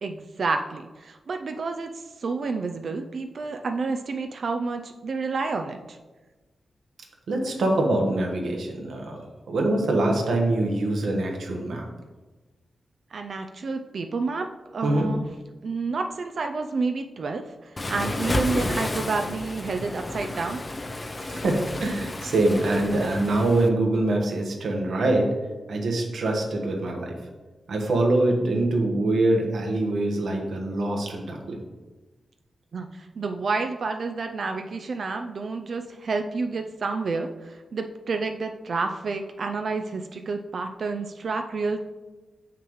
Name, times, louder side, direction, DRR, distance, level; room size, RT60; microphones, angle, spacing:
voice 1, 0.0-1.9 2.2-6.0 13.1-14.5 14.7-15.3 15.6-17.4 17.9-20.6 32.7-41.8, right 4 dB, 60° right, 5 dB, 0.4 m, -29 dB
voice 2, 7.3-9.2 9.5-11.9 14.8-15.1 21.3-25.3 25.7-27.1 27.7-31.6, right 2 dB, 85° right, 1 dB, 1.2 m, -24 dB
Waves surf, 17.8-23.7, left 2 dB, 25° left, 0.5 m, -31 dB
7.1 x 5.8 x 3.1 m, 1.2 s
wide cardioid pair, 120°, 0 cm